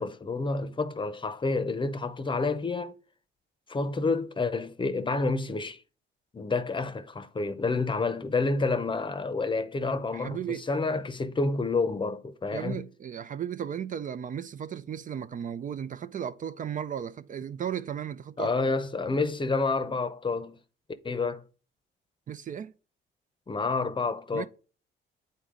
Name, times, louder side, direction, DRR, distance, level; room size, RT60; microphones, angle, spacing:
voice 1, 0.0-2.9 3.7-5.8 6.3-10.4 10.7-12.8 18.4-20.6 21.0-21.4 23.5-24.5, left 3 dB, 25° left, 0.7 m, -29 dB
voice 2, 10.1-10.6 12.5-18.7 22.3-22.7 24.3-24.5, right 9 dB, 40° right, 0.4 m, -35 dB
8.5 x 4.1 x 3.7 m
cardioid pair, 90°, 20 cm